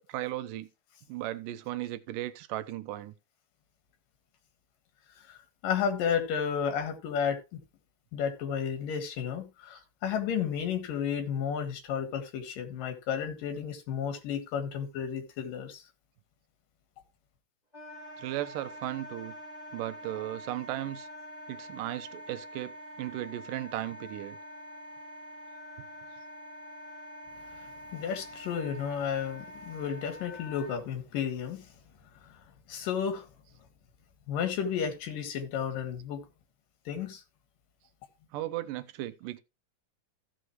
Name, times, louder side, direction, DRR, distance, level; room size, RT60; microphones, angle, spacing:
voice 1, 0.1-0.7 1.1-3.1 18.2-19.3 19.7-21.1 21.5-24.4 38.3-39.4, right 14 dB, 80° right, 2.3 m, -36 dB
voice 2, 5.6-7.6 8.1-15.8 27.5-31.7 32.3-32.4 32.7-33.3 34.3-36.2 36.9-37.2, left 7 dB, 85° left, 3.4 m, -32 dB
Wind instrument woodwind instrument, 17.7-30.8, equal, 10° left, 3.3 m, -46 dB
15.0 x 6.4 x 3.0 m
omnidirectional pair, 3.8 m